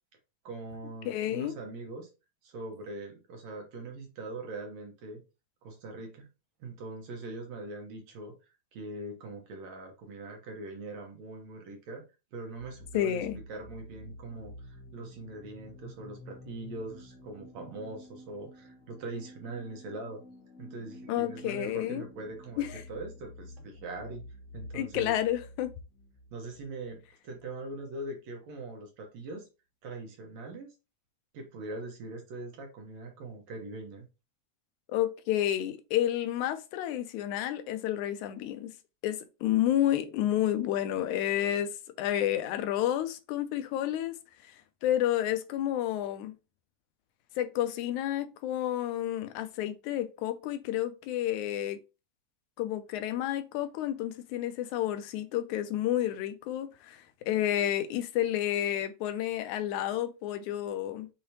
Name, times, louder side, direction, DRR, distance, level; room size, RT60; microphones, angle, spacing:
voice 1, 0.4-2.1 2.4-5.2 5.6-6.3 6.6-8.3 8.7-12.0 12.3-20.2 20.6-24.2 24.5-25.1 26.3-29.5 29.8-30.7 31.3-34.0, right 2 dB, 70° right, 2.3 m, -42 dB
voice 2, 1.1-1.6 12.9-13.4 21.1-22.1 22.6-22.8 24.7-25.7 34.9-38.7 39.0-41.7 42.0-44.1 44.5-44.6 44.8-46.4 47.4-51.8 52.6-61.1, left 12 dB, 90° left, 2.0 m, -30 dB
sound 1, 12.6-28.1, left 1 dB, 50° left, 1.4 m, -50 dB
6.6 x 2.8 x 2.8 m
omnidirectional pair, 3.4 m